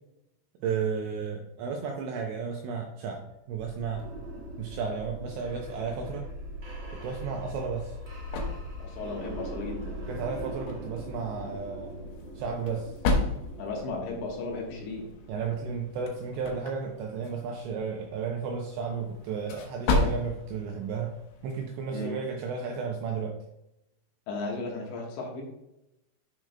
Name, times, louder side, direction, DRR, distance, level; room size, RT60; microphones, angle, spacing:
voice 1, 0.6-4.1 4.6-6.3 6.9-8.0 10.1-12.0 12.4-12.9 15.3-21.1 21.4-23.4, right 5 dB, 80° right, 2 dB, 2.7 m, -33 dB
sound 1, 3.5-16.3, equal, 60° right, 0.9 m, -41 dB
sound 2, 7.5-21.9, left 3 dB, 85° left, 2.1 m, -35 dB
voice 2, 8.8-10.0 13.6-15.1 21.9-22.2 24.3-25.4, left 3 dB, 70° left, -1 dB, 3.3 m, -35 dB
12.0 x 6.2 x 2.2 m, 0.88 s
omnidirectional pair, 5.9 m